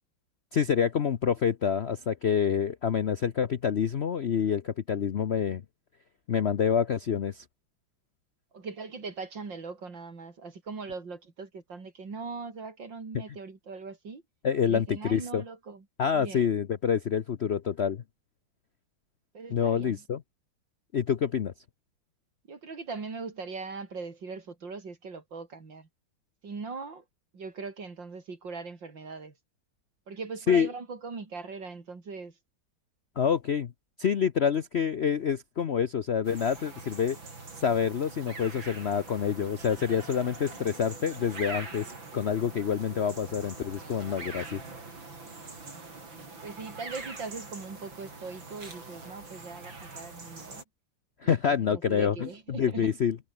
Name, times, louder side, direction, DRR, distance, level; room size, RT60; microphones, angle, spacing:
voice 1, 0.5-5.6 6.3-7.4 14.4-15.4 16.0-18.0 19.5-20.2 20.9-21.5 30.5-30.7 33.2-33.7 34.0-37.2 37.6-44.6 51.2-53.2, left 7 dB, 55° left, 0.7 m, -27 dB
voice 2, 8.5-14.2 14.6-15.8 16.1-16.5 19.3-20.0 22.5-25.9 26.4-27.0 27.3-29.3 30.1-32.3 46.4-50.6 51.2-52.9, right 4 dB, 70° right, 4.3 m, -40 dB
sound 1, 36.2-50.6, right 3 dB, 85° right, 6.0 m, -43 dB
omnidirectional pair, 2.1 m